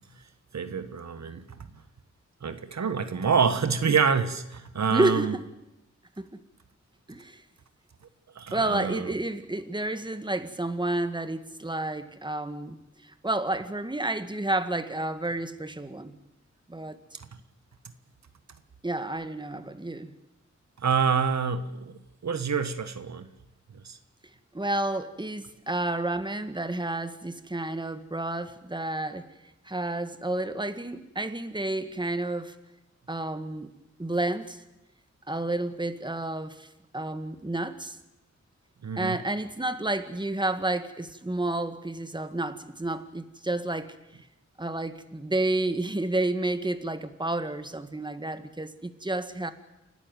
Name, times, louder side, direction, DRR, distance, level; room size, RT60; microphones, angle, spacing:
voice 1, 0.5-1.6 2.4-5.3 8.3-9.2 20.8-21.9 22.2-23.3 23.8-24.0 38.8-39.2, right 6 dB, 70° right, 1.4 m, -27 dB
voice 2, 4.9-5.4 6.2-6.4 7.1-7.4 8.5-16.2 16.7-17.0 18.8-20.2 24.5-29.3 29.7-32.6 33.1-33.7 34.0-34.6 35.3-38.0 39.0-43.9 44.6-49.5, right 2 dB, 15° right, 1.9 m, -30 dB
29.0 x 12.5 x 9.5 m
cardioid pair, 60°, 29 cm